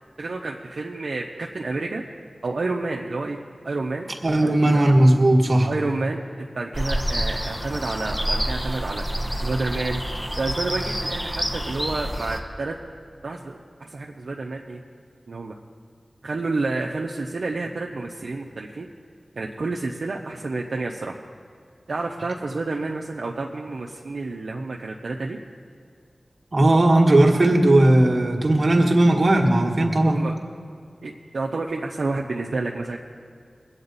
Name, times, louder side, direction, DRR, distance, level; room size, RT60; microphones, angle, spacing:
voice 1, 0.2-2.0 2.4-3.4 3.6-4.1 4.4-4.8 5.6-9.1 9.4-10.0 10.3-12.8 13.2-14.8 15.3-15.6 16.2-18.9 19.4-21.2 21.9-25.4 30.1-30.3 31.0-33.0, right 3 dB, 80° right, 0 dB, 0.7 m, -29 dB
voice 2, 4.2-5.7 26.5-30.2, right 1 dB, 60° right, 3 dB, 1.5 m, -17 dB
sound 1, 6.7-12.4, equal, ahead, 1.2 m, -28 dB
21.0 x 8.8 x 4.1 m, 2.3 s
cardioid pair, 50°, 0 cm